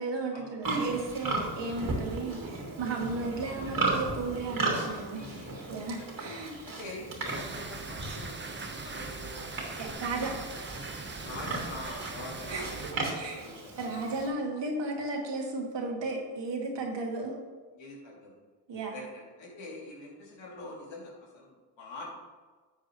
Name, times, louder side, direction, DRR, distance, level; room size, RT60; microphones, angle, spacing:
voice 1, 0.0-5.2 5.7-6.6 9.8-10.7 12.5-12.6 13.2-13.4 13.8-17.4 18.7-19.0, right 3 dB, 65° right, 0 dB, 2.1 m, -34 dB
Livestock farm animals working animals, 0.6-14.3, right 3 dB, 45° right, 2.6 m, -36 dB
voice 2, 4.7-6.2 6.6-10.0 11.2-14.2 17.7-18.4 18.9-22.1, left 2 dB, 75° left, -3 dB, 2.9 m, -45 dB
sound 1, 7.3-12.9, right 3 dB, 25° right, 1.1 m, -41 dB
11.0 x 7.4 x 3.1 m, 1.4 s
cardioid pair, 65°, 46 cm